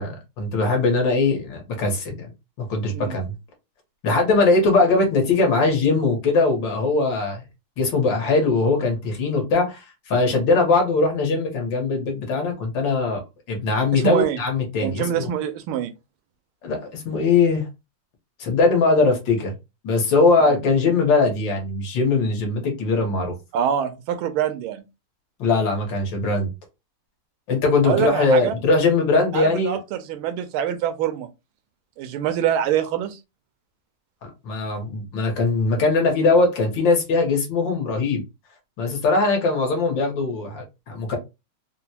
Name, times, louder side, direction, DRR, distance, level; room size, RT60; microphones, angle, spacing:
voice 1, 0.0-2.3 2.6-3.3 4.0-7.4 7.8-13.2 13.5-15.3 16.6-17.7 18.4-19.5 19.8-23.3 25.4-26.5 27.5-29.8 34.2-38.2 38.8-41.2, left 3 dB, 65° left, 1.7 m, -21 dB
voice 2, 13.9-14.4 14.8-15.9 23.5-24.8 27.8-28.5 29.3-31.3 32.0-33.2, right 9 dB, 90° right, 1.5 m, -25 dB
4.1 x 2.1 x 2.8 m
omnidirectional pair, 2.3 m